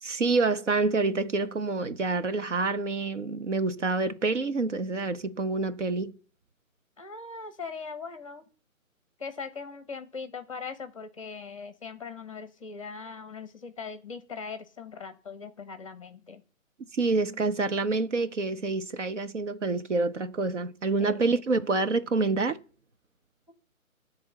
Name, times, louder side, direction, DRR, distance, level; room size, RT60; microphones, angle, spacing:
voice 1, 0.0-6.2 16.9-22.6, right 3 dB, 55° right, 0.9 m, -27 dB
voice 2, 7.0-8.4 9.2-16.4 21.0-21.2, left 5 dB, 25° left, 0.9 m, -40 dB
11.0 x 3.6 x 6.9 m
hypercardioid pair, 160°, 42 cm